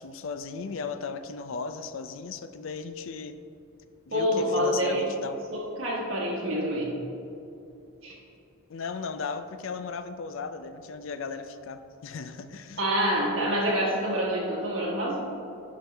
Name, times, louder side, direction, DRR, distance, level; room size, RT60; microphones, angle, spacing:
voice 1, 0.0-3.4 4.1-5.4 8.7-12.8, left 5 dB, 70° left, 10 dB, 0.4 m, -36 dB
voice 2, 4.1-5.0 5.5-6.9 8.0-8.1 12.8-15.3, equal, 65° right, -5 dB, 1.5 m, -27 dB
10.5 x 5.3 x 3.4 m, 2.7 s
head